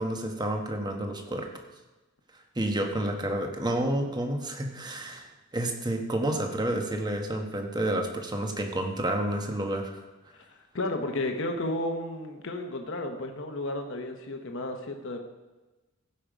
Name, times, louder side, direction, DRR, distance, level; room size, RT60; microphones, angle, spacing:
voice 1, 0.0-1.5 2.5-10.0, right 1 dB, 20° right, 3 dB, 1.1 m, -30 dB
voice 2, 10.3-15.2, left 1 dB, 60° left, 4 dB, 1.0 m, -33 dB
15.5 x 5.4 x 5.1 m, 1.1 s
head